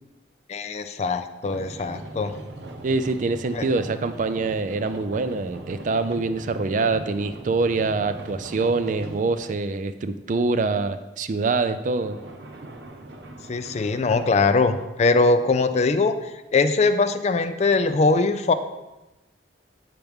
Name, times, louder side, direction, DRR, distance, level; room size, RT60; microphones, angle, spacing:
voice 1, 0.5-2.3 3.5-3.7 13.5-16.1 16.5-18.5, left 3 dB, 40° left, 11 dB, 0.4 m, -21 dB
sound 1, 1.4-9.6 11.8-14.9, right 1 dB, 80° right, 0.8 m, -40 dB
voice 2, 2.8-12.2, right 3 dB, 45° right, 11 dB, 0.4 m, -25 dB
7.8 x 5.8 x 3.5 m, 1.0 s
head